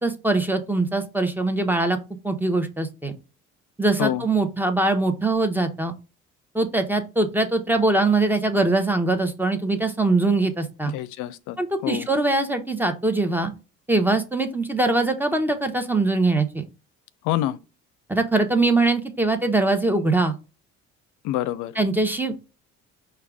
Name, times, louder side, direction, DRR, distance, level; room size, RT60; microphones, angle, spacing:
voice 1, 0.0-2.0 2.2-3.1 3.8-5.9 6.5-10.9 11.6-13.5 13.9-16.7 18.1-20.3 21.8-22.4, right 2 dB, 5° right, 0.7 m, -22 dB
voice 2, 10.8-11.6 11.8-12.1 17.2-17.6 21.2-21.7, left 13 dB, 80° left, 0.5 m, -26 dB
4.7 x 2.3 x 3.4 m
supercardioid pair, 85°, 30 cm